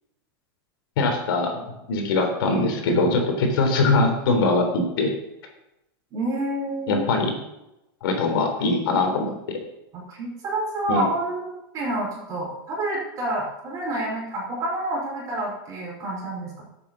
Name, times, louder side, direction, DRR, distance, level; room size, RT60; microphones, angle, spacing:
voice 1, 1.0-1.6 1.9-5.1 6.9-7.3 8.0-9.6 10.9-11.1, left 3 dB, 70° left, 3 dB, 3.6 m, -22 dB
voice 2, 6.1-7.0 9.9-16.6, right 1 dB, 25° right, -3 dB, 5.5 m, -28 dB
11.5 x 8.4 x 7.3 m, 0.91 s
supercardioid pair, 160°, 13 cm